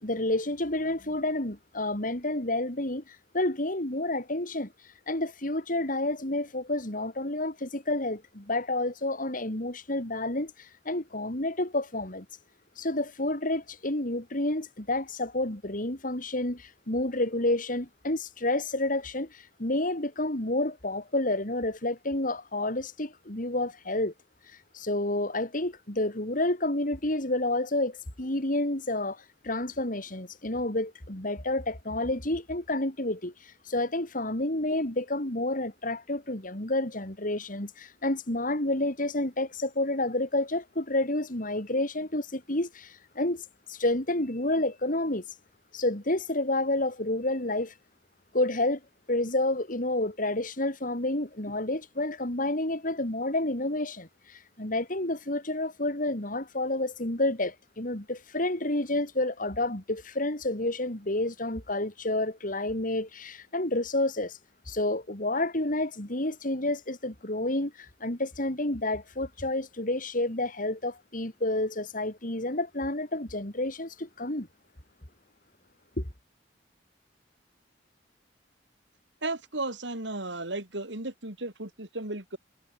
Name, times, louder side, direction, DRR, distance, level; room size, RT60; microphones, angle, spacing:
voice 1, 0.0-4.7 5.1-12.3 12.8-24.1 24.7-45.2 45.7-47.7 48.3-48.8 49.1-64.4 64.7-74.5 76.0-76.1, left 2 dB, 50° left, 4.0 m, -29 dB
voice 2, 79.2-82.4, right 2 dB, 80° right, 4.8 m, -34 dB
head